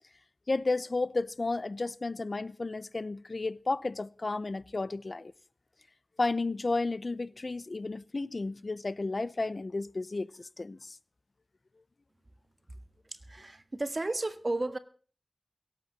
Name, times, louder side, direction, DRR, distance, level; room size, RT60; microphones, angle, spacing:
voice 1, 0.5-5.3 6.2-11.0, left 3 dB, 50° left, 0.7 m, -32 dB
voice 2, 13.0-14.8, right 2 dB, 35° right, 1.6 m, -33 dB
17.0 x 8.5 x 8.4 m
wide cardioid pair, 90°, 0 cm